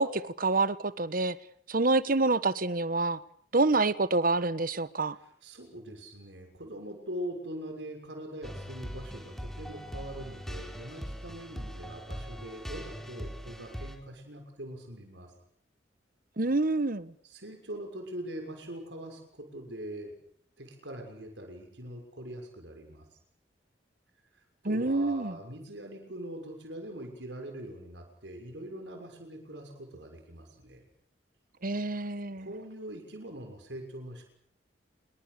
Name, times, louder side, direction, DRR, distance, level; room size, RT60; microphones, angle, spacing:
voice 1, 0.0-1.4 1.7-3.2 3.5-5.2 16.4-17.1 24.7-25.3 31.6-32.5, right 3 dB, 50° right, 1.2 m, -27 dB
voice 2, 5.2-15.3 17.2-20.2 20.6-23.1 24.3-30.9 31.9-32.0 32.4-34.3, right 1 dB, 80° right, 6.4 m, -42 dB
sound 1, 8.4-14.0, equal, ahead, 4.4 m, -41 dB
29.0 x 22.5 x 6.9 m
head